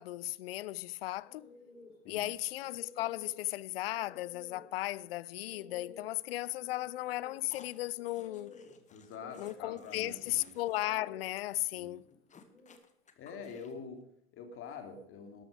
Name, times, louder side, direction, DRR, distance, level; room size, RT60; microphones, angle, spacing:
voice 1, 0.0-1.5 2.1-8.5 9.4-12.0, left 16 dB, 60° left, 0.7 m, -36 dB
sound 1, 1.2-12.8, left 3 dB, 90° left, 4.8 m, -56 dB
sound 2, 7.5-10.9 11.2-11.3 11.6-11.7 12.0-13.9, left 6 dB, 20° left, 1.9 m, -59 dB
voice 2, 8.9-10.5 11.7-12.0 13.2-15.4, left 5 dB, 40° left, 3.0 m, -46 dB
13.0 x 12.5 x 5.0 m
figure-of-eight pair, 90°, 33 cm